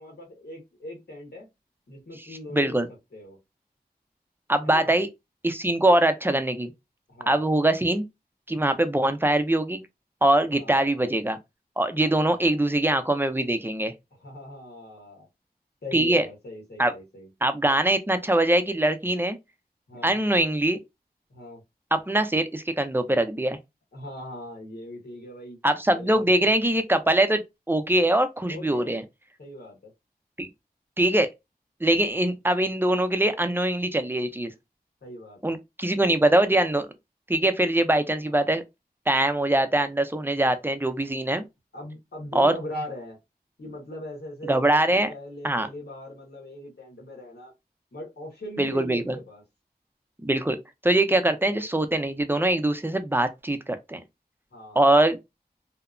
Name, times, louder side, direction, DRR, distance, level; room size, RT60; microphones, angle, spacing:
voice 1, 0.0-1.5 1.9-3.4 4.6-4.9 7.1-7.4 10.5-11.1 12.0-12.6 14.2-15.3 15.8-17.3 19.9-20.2 21.3-21.6 23.9-25.6 25.9-26.5 28.4-29.0 29.4-29.9 32.0-32.3 35.0-35.5 38.2-38.5 41.7-43.2 43.6-44.7 45.1-47.5 47.9-49.4 54.5-54.9, left 1 dB, 80° left, 1.2 m, -40 dB
voice 2, 2.5-2.9 4.5-5.1 5.4-6.7 7.3-8.0 8.5-9.8 10.2-11.4 11.8-13.9 15.9-16.3 16.8-16.9 17.4-19.4 20.0-20.8 21.9-23.6 25.6-29.0 30.4-30.5 31.0-31.3 31.8-34.5 35.4-36.9 37.3-38.6 39.1-41.4 42.3-42.5 44.5-45.1 45.4-45.7 48.6-49.1 50.2-50.6 50.8-54.0 54.8-55.2, right 1 dB, 15° right, 0.5 m, -22 dB
2.8 x 2.1 x 2.4 m
cardioid pair, 40°, 17 cm